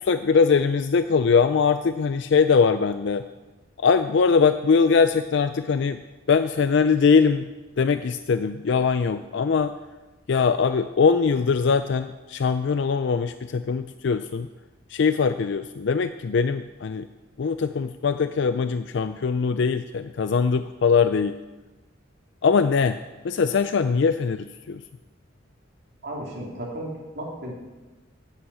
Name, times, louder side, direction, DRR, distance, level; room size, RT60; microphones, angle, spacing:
voice 1, 0.0-3.2 3.8-6.0 6.3-7.5 7.8-9.7 10.3-14.5 14.9-17.1 17.4-21.4 22.4-23.0 23.2-24.8, left 5 dB, 60° left, 11 dB, 0.4 m, -21 dB
voice 2, 26.0-27.5, right 1 dB, 55° right, -3 dB, 3.4 m, -34 dB
9.6 x 9.0 x 8.3 m, 1.2 s
head